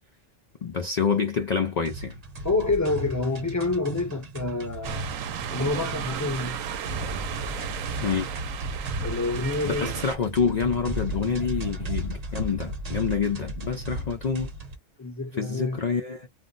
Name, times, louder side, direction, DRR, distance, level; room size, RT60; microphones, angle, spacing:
voice 1, 0.6-2.2 8.0-8.3 9.6-14.5 15.4-16.3, left 6 dB, 85° left, 0.3 m, -27 dB
sound 1, 1.8-14.8, right 1 dB, 35° right, 0.8 m, -35 dB
voice 2, 2.4-5.1 5.5-6.7 9.0-9.9 13.9-14.1 15.0-15.8, left 3 dB, 20° left, 0.5 m, -28 dB
sound 2, 4.8-10.2, right 8 dB, 85° right, 1.0 m, -34 dB
2.4 x 2.0 x 3.8 m
omnidirectional pair, 1.3 m